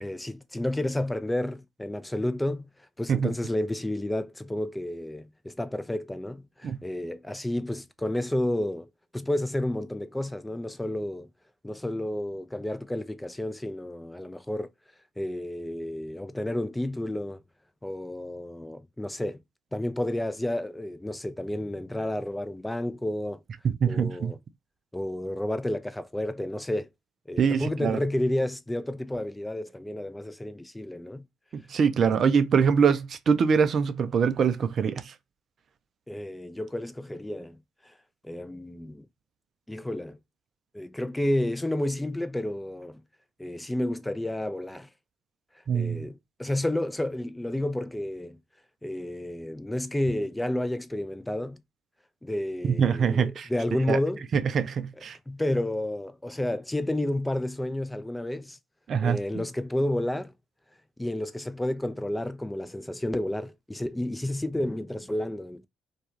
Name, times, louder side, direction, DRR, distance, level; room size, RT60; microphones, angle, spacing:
voice 1, 0.0-2.7 3.0-11.3 11.6-14.7 15.2-17.4 17.8-19.4 19.7-23.4 23.9-24.4 24.9-26.9 27.3-31.3 32.0-32.2 36.1-37.9 38.2-39.1 39.7-40.2 40.7-43.0 43.4-44.9 45.7-48.4 48.8-51.6 52.2-54.2 55.3-58.6 59.0-60.3 61.0-65.7, left 1 dB, 10° left, 0.4 m, -31 dB
voice 2, 23.6-24.3 27.4-28.0 31.7-35.1 45.7-46.1 52.6-53.5 53.9-54.0 54.3-55.2 58.9-59.4, right 6 dB, 55° right, 0.4 m, -24 dB
2.3 x 2.2 x 2.9 m
hypercardioid pair, 50°, 0 cm